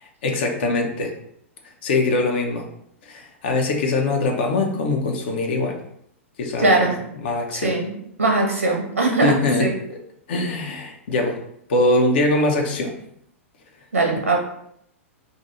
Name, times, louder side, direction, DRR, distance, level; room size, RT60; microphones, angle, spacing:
voice 1, 0.2-1.1 1.8-2.7 3.0-5.8 6.4-6.8 7.2-7.7 9.2-10.0 10.3-11.4 11.7-13.0, left 2 dB, 50° left, 2 dB, 0.6 m, -22 dB
voice 2, 6.6-7.0 7.5-9.7 13.9-14.4, right 2 dB, 75° right, 1 dB, 0.9 m, -20 dB
2.6 x 2.6 x 4.2 m, 0.73 s
figure-of-eight pair, 100°, 7 cm